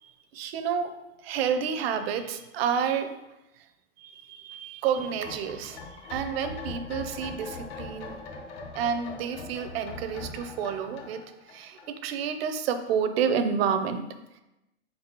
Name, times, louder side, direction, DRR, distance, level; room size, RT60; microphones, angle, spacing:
voice 1, 0.0-0.9 1.2-3.1 4.0-8.2 8.7-11.2 11.5-14.0, right 7 dB, 50° right, 8 dB, 0.5 m, -29 dB
sound 1, 5.0-12.3 12.6-12.7, left 3 dB, 50° left, 0.8 m, -41 dB
4.1 x 3.8 x 3.0 m, 0.96 s
supercardioid pair, 150°, 39 cm